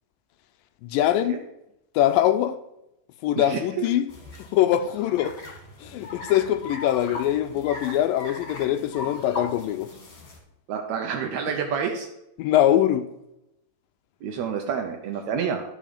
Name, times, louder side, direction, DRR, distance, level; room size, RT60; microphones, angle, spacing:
voice 1, 0.8-1.4 2.0-2.6 3.2-4.1 4.5-5.4 5.8-9.9 12.4-13.1, left 12 dB, 80° left, 2.2 m, -22 dB
voice 2, 3.4-3.9 10.7-12.1 14.2-15.6, right 7 dB, 85° right, 1.6 m, -28 dB
sound 1, 4.1-10.4, left 3 dB, 40° left, 2.1 m, -39 dB
11.5 x 5.1 x 5.0 m
omnidirectional pair, 4.2 m